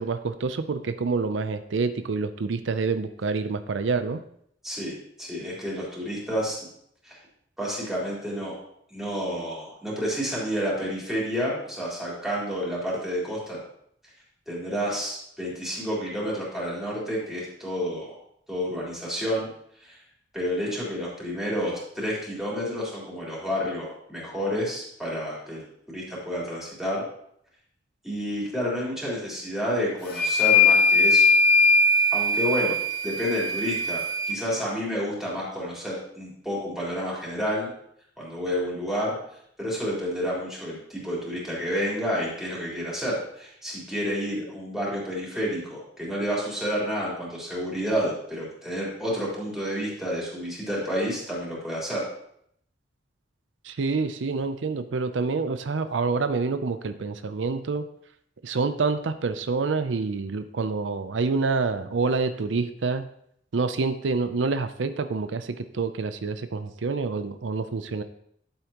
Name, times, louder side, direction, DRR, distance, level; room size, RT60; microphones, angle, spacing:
voice 1, 0.0-4.2 53.6-57.9 58.4-63.1 63.5-68.0, right 4 dB, 90° right, 10 dB, 0.5 m, -27 dB
voice 2, 4.6-6.6 7.0-7.1 7.6-8.6 8.9-13.6 14.5-18.1 18.5-19.5 19.8-20.0 20.3-25.6 25.9-27.0 28.0-31.2 32.1-32.8 33.0-37.7 38.2-39.2 39.6-52.0, equal, ahead, -7 dB, 3.8 m, -30 dB
sound 1, 30.1-34.4, left 3 dB, 55° left, 1.7 m, -20 dB
11.5 x 8.1 x 3.0 m, 0.69 s
head